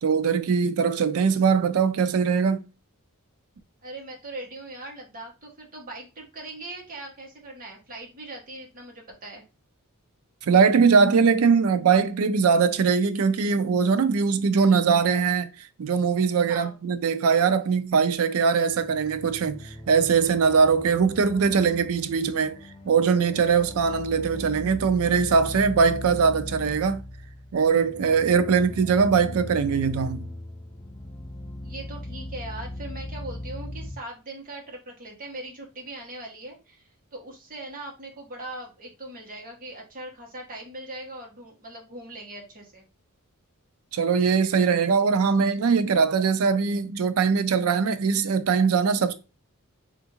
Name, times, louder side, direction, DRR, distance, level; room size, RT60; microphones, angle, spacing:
voice 1, 0.0-2.6 10.4-15.5 15.8-22.6 22.9-27.0 27.5-30.3 43.9-49.1, right 5 dB, 65° right, 0.4 m, -21 dB
voice 2, 3.8-9.4 16.5-16.8 31.6-42.9, right 2 dB, 40° right, 1.1 m, -40 dB
sound 1, 18.6-33.9, left 1 dB, 20° left, 0.5 m, -39 dB
3.4 x 2.5 x 2.9 m
head